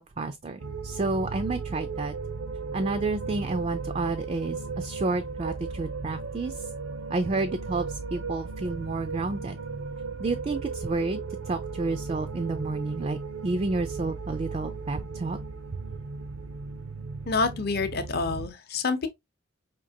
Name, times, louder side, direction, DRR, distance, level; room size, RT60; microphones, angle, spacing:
voice 1, 0.0-2.1 2.7-6.6 7.1-9.6 10.2-15.4, right 3 dB, 30° right, 0.3 m, -30 dB
sound 1, 0.6-18.5, right 4 dB, 80° right, 0.6 m, -36 dB
voice 2, 17.3-19.1, left 4 dB, 50° left, 0.7 m, -27 dB
5.1 x 2.8 x 2.7 m
head